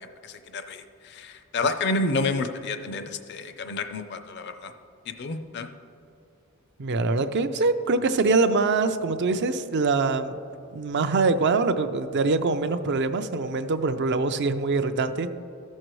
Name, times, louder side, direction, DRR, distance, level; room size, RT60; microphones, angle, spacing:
voice 1, 0.2-4.7 5.2-5.7, left 3 dB, 55° left, 8 dB, 0.5 m, -29 dB
voice 2, 6.8-10.4 10.7-15.3, right 3 dB, 55° right, 10 dB, 0.4 m, -24 dB
14.5 x 6.4 x 3.1 m, 2.6 s
head